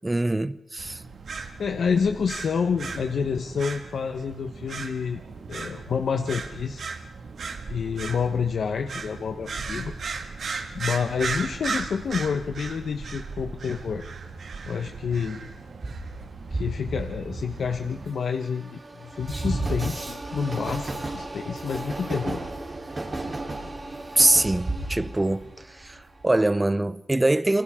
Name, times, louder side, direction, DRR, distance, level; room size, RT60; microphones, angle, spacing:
voice 1, 0.0-1.0 24.2-27.6, right 2 dB, 15° right, 0.7 m, -23 dB
sound 1, 0.8-18.1, right 4 dB, 70° right, 2.0 m, -36 dB
voice 2, 1.6-5.2 5.5-6.9 7.7-9.9 10.7-14.0 14.7-15.4 16.5-22.4, left 6 dB, 70° left, 1.2 m, -28 dB
Train, 15.8-26.2, right 2 dB, 35° right, 3.8 m, -33 dB
29.0 x 24.5 x 3.8 m
wide cardioid pair, 105°, 0 cm